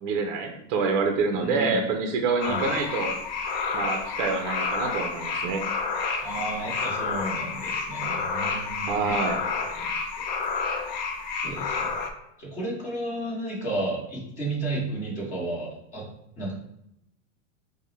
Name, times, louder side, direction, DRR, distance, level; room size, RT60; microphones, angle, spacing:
voice 1, 0.0-3.2 3.7-5.6 8.8-9.4, right 4 dB, 45° right, 4 dB, 0.5 m, -27 dB
voice 2, 1.4-1.8 2.4-2.6 6.2-9.3 9.7-9.9 11.4-11.9 12.4-16.0 16.4-16.5, right 2 dB, 20° left, -5 dB, 1.2 m, -32 dB
sound 1, 2.4-12.1, left 4 dB, 40° left, 0.4 m, -30 dB
5.3 x 2.2 x 3.2 m, 0.79 s
supercardioid pair, 155°, 38 cm